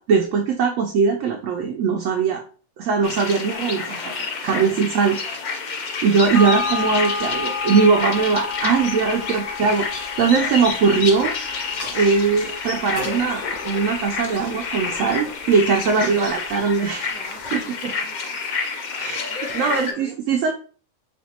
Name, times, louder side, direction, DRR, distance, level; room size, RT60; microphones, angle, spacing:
voice 1, 0.0-2.4 2.8-5.4 6.0-11.3 11.8-17.1 17.5-17.6 19.0-19.2 19.5-20.5, right 5 dB, 70° right, 2 dB, 0.9 m, -20 dB
sound 1, 3.0-19.9, left 4 dB, 90° left, 0.4 m, -29 dB
sound 2, 6.3-15.1 15.4-15.5, left 4 dB, 75° left, 1.3 m, -32 dB
voice 2, 8.9-9.3 11.9-12.1 17.1-18.4 19.3-20.1, right 2 dB, ahead, -6 dB, 1.0 m, -44 dB
sound 3, 11.6-17.9, left 2 dB, 50° left, 1.3 m, -44 dB
4.3 x 2.5 x 2.7 m, 0.40 s
omnidirectional pair, 1.5 m